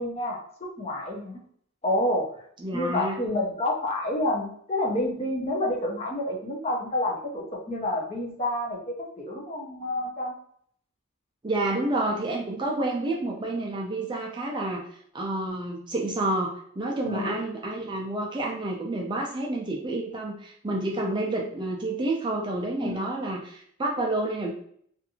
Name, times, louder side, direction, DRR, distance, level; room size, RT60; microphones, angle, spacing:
voice 1, 0.0-1.4 1.8-2.2 2.7-10.3 17.0-17.3 22.8-23.1, left 1 dB, 30° left, -1 dB, 0.5 m, -29 dB
voice 2, 2.6-3.2 11.4-14.8 15.1-24.5, right 2 dB, 20° right, 0 dB, 0.3 m, -29 dB
2.5 x 2.5 x 2.7 m, 0.63 s
head